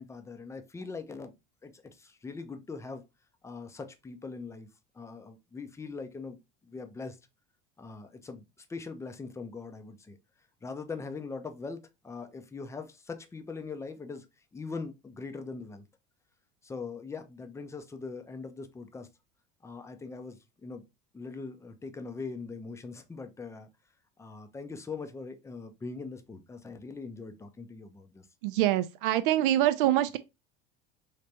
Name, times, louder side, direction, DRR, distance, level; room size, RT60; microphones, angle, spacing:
voice 1, 0.0-1.3 1.6-3.0 3.4-4.7 4.9-6.4 6.6-7.2 7.8-10.2 10.6-14.3 14.5-15.8 16.6-19.1 19.6-20.8 21.1-23.7 24.2-28.3, left 4 dB, 10° left, 0.5 m, -41 dB
voice 2, 28.4-30.2, right 13 dB, 60° right, 0.4 m, -25 dB
3.2 x 3.2 x 2.7 m
hypercardioid pair, 75°, 30 cm